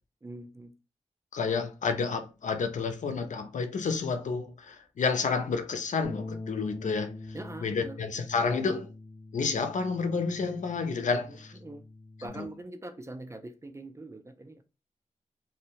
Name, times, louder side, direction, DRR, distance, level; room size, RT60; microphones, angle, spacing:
voice 1, 0.2-0.7 7.3-8.0 8.3-8.6 11.3-11.8 12.2-14.6, right 2 dB, 20° right, 0.4 m, -43 dB
voice 2, 1.3-7.1 7.6-8.9 9.3-11.5 12.4-12.5, left 5 dB, 70° left, 0.4 m, -30 dB
Bass guitar, 6.0-12.3, left 2 dB, 25° left, 0.5 m, -44 dB
2.6 x 2.0 x 2.8 m
wide cardioid pair, 95°, 13 cm